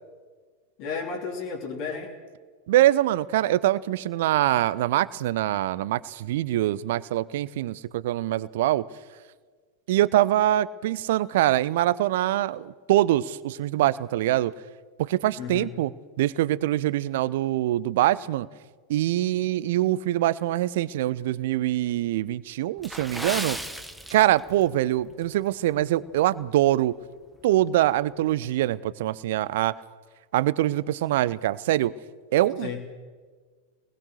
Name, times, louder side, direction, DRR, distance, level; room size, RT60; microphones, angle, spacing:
voice 1, 0.8-2.2 15.4-15.7 32.6-32.9, left 5 dB, 45° left, 0 dB, 3.4 m, -33 dB
voice 2, 2.7-8.8 9.9-14.5 15.0-15.9 16.2-18.5 18.9-23.6 24.1-26.9 27.4-29.7 30.3-31.9 32.3-32.7, right 14 dB, 55° right, 19 dB, 0.7 m, -24 dB
Water / Splash splatter, 22.8-24.7 25.0-25.2 25.8-26.0 26.5-26.6, equal, ahead, 1.1 m, -35 dB
24.5 x 20.5 x 6.6 m, 1.5 s
figure-of-eight pair, 90°, 0 cm